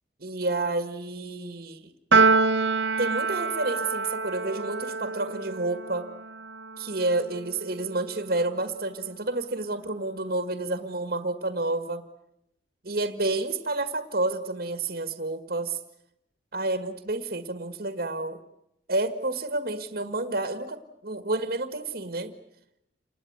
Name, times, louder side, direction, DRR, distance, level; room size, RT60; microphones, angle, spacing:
voice 1, 0.2-1.9 3.0-6.1 6.8-12.0 12.8-15.8 16.5-18.4 18.9-22.3, right 2 dB, 60° right, 9 dB, 1.7 m, -30 dB
Piano, 2.1-8.6, right 4 dB, 85° right, 1.2 m, -27 dB
29.0 x 20.0 x 9.5 m, 0.84 s
head